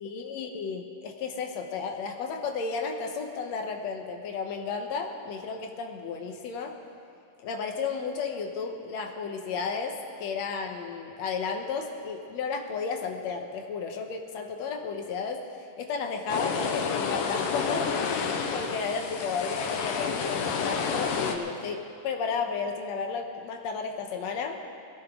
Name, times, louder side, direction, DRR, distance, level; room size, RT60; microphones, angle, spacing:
voice 1, 0.0-6.8 7.4-24.6, left 5 dB, 65° left, 4 dB, 1.9 m, -33 dB
sound 1, 16.3-21.4, left 5 dB, 85° left, 2.8 m, -29 dB
21.0 x 16.0 x 3.7 m, 2.5 s
omnidirectional pair, 4.0 m